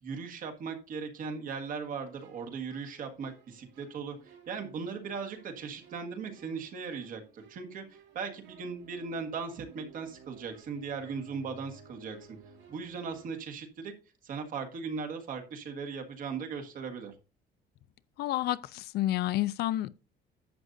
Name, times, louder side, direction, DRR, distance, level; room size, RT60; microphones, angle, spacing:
voice 1, 0.0-12.2 12.7-13.9 14.2-17.1, right 5 dB, 50° right, 1.7 m, -38 dB
sound 1, 1.9-13.3, right 6 dB, 80° right, 2.1 m, -57 dB
voice 2, 18.2-19.9, left 14 dB, 65° left, 0.5 m, -30 dB
11.0 x 8.0 x 2.7 m
cardioid pair, 170°, 18 cm